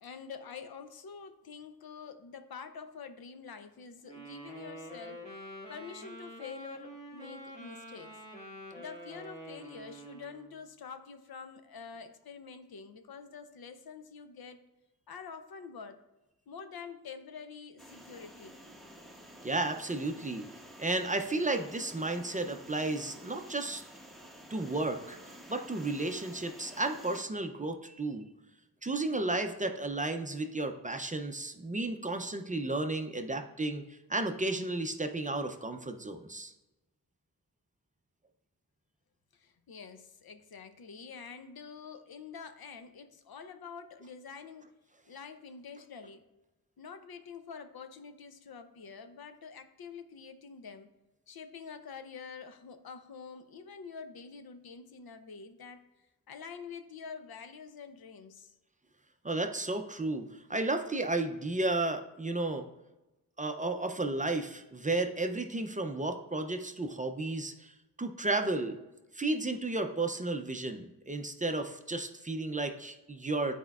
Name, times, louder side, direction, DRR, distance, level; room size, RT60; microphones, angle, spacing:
voice 1, 0.0-8.2 8.7-14.6 15.1-16.0 16.5-18.6 39.3-44.7 45.1-46.2 46.8-50.9 51.3-55.8 56.3-58.5, left 6 dB, 75° left, 9 dB, 0.6 m, -47 dB
Wind instrument woodwind instrument, 4.1-10.5, equal, 20° left, 1.4 m, -47 dB
sound 1, 17.8-27.2, right 1 dB, ahead, 0.8 m, -51 dB
voice 2, 19.4-20.5 20.8-23.8 24.5-28.2 28.8-33.8 34.1-36.5 59.2-62.7 63.4-67.7 68.0-68.8 69.1-73.5, right 2 dB, 20° right, 6 dB, 0.4 m, -33 dB
11.5 x 4.4 x 2.3 m, 1.0 s
wide cardioid pair, 120°, 36 cm